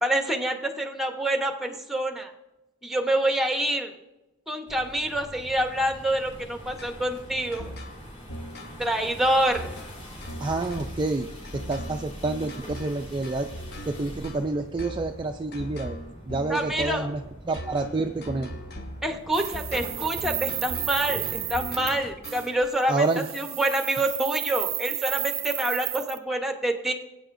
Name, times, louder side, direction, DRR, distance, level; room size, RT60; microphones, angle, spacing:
voice 1, 0.0-2.3 2.8-3.9 4.5-7.7 8.8-9.7 16.5-17.1 19.0-26.9, right 1 dB, ahead, 4 dB, 0.9 m, -27 dB
sound 1, 4.7-22.1, equal, 30° left, 3.6 m, -43 dB
sound 2, 6.8-22.7, equal, 55° left, 1.0 m, -40 dB
voice 2, 10.4-11.3 11.7-13.5 13.9-16.0 16.3-17.2 17.5-18.5 22.9-23.2, right 3 dB, 25° right, 4 dB, 0.4 m, -28 dB
sound 3, 19.3-22.0 22.2-22.5 23.0-26.2, right 16 dB, 80° right, 0.5 m, -32 dB
20.0 x 8.8 x 2.6 m, 1.0 s
head